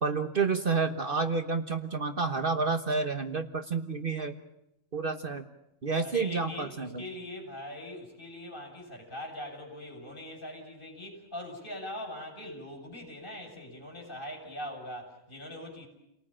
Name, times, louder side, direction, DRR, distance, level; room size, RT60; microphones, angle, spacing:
voice 1, 0.0-4.3 4.9-5.4 5.8-7.0, right 4 dB, 50° right, 7 dB, 1.3 m, -29 dB
voice 2, 6.0-15.9, left 1 dB, 45° left, 1 dB, 7.3 m, -42 dB
29.5 x 19.0 x 8.9 m, 0.84 s
omnidirectional pair, 1.3 m